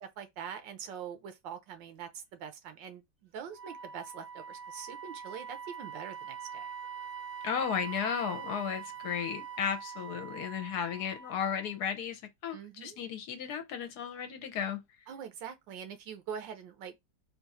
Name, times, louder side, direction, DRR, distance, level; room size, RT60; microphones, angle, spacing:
voice 1, 0.2-6.7 12.5-13.0 15.1-17.0, right 7 dB, 85° right, 1.5 m, -44 dB
Wind instrument woodwind instrument, 3.5-11.8, right 7 dB, 40° right, 0.8 m, -43 dB
voice 2, 7.4-14.8, left 7 dB, 70° left, 1.1 m, -34 dB
3.8 x 2.4 x 4.1 m
omnidirectional pair, 1.9 m